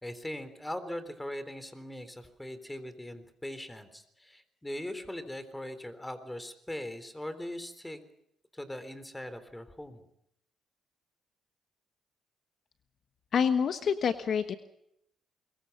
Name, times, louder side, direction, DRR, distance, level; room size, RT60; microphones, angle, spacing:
voice 1, 0.0-8.0 8.5-10.0, left 1 dB, 10° left, 11 dB, 3.8 m, -40 dB
voice 2, 13.3-14.5, left 7 dB, 60° left, 10 dB, 1.2 m, -27 dB
24.5 x 23.0 x 5.7 m, 0.76 s
cardioid pair, 90°, 0 cm